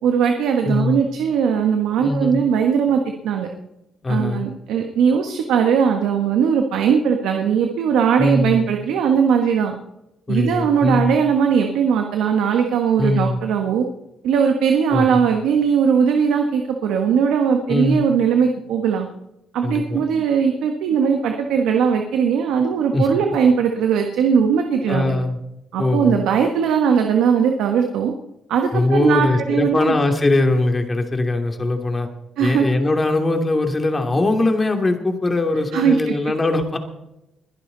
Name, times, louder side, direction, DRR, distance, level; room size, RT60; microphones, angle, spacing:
voice 1, 0.0-3.5 4.1-9.7 10.3-13.8 14.2-19.1 19.5-25.1 25.7-28.1 28.5-29.9 32.4-32.7 35.7-36.1, right 7 dB, 85° right, 4 dB, 1.4 m, -19 dB
voice 2, 0.6-1.0 2.0-2.4 4.0-4.4 8.2-8.7 10.3-11.2 12.9-13.4 14.9-15.2 17.7-18.0 19.6-20.0 22.9-23.1 24.9-25.4 25.8-26.2 28.7-32.1 32.4-36.8, left 2 dB, 25° left, 4 dB, 2.7 m, -21 dB
22.0 x 11.0 x 4.0 m, 0.89 s
cardioid pair, 90°, 0 cm